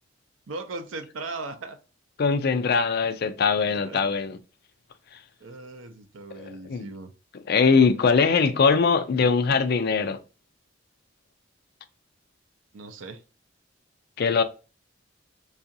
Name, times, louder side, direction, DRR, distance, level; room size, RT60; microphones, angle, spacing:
voice 1, 0.5-1.8 3.7-4.1 5.4-7.1 12.7-13.2, right 3 dB, 80° right, 0.5 m, -38 dB
voice 2, 2.2-4.4 6.4-6.9 7.5-10.2 14.2-14.4, left 5 dB, 55° left, 0.4 m, -21 dB
4.7 x 2.4 x 2.6 m
head